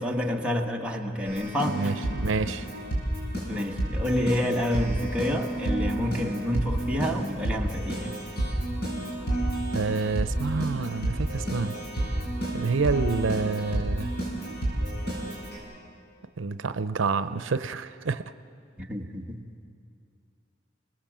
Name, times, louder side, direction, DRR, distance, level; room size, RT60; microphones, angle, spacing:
voice 1, 0.0-2.2 3.5-8.1 18.8-19.4, left 1 dB, 5° right, -1 dB, 1.5 m, -29 dB
Keyboard (musical), 1.3-15.6, right 1 dB, 55° left, 7.2 m, -30 dB
voice 2, 1.6-2.7 9.7-11.8 12.5-14.1 16.4-18.2, right 4 dB, 85° right, 12 dB, 0.6 m, -28 dB
30.0 x 20.0 x 7.4 m, 2.4 s
head